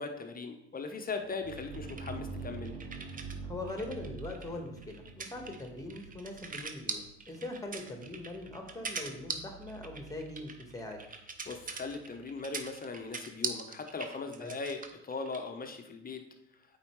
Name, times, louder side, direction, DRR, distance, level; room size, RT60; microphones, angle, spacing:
voice 1, 0.0-2.8 11.5-16.2, left 4 dB, 25° left, 5 dB, 1.1 m, -39 dB
sound 1, 1.2-12.8, right 4 dB, 85° right, 1.0 m, -47 dB
sound 2, 1.5-3.4 3.7-15.5, right 4 dB, 25° right, 0.8 m, -42 dB
voice 2, 3.4-11.0 14.4-14.6, left 2 dB, 10° left, 3 dB, 1.6 m, -42 dB
8.5 x 4.5 x 3.2 m, 0.81 s
hypercardioid pair, 60°, 33 cm